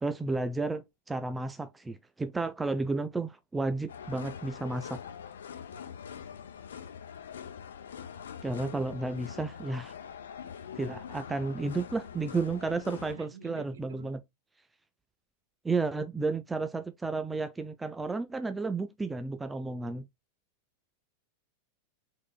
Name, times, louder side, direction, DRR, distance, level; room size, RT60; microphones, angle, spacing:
voice 1, 0.0-5.0 8.4-9.9 10.8-14.2 15.6-20.1, right 3 dB, 10° right, 0.4 m, -32 dB
sound 1, 3.9-13.1, left 7 dB, 65° left, 0.7 m, -44 dB
voice 2, 12.6-14.2, right 8 dB, 65° right, 0.9 m, -50 dB
4.7 x 3.8 x 2.3 m
figure-of-eight pair, 90°, 0 cm